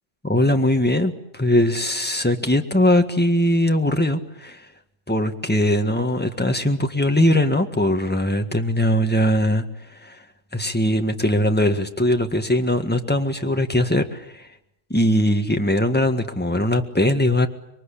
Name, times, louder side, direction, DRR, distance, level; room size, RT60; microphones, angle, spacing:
voice 1, 0.2-4.6 5.1-9.6 10.0-10.1 10.5-14.5 14.9-17.5, left 1 dB, 10° left, 6 dB, 1.7 m, -20 dB
26.5 x 22.5 x 8.6 m, 0.80 s
omnidirectional pair, 1.3 m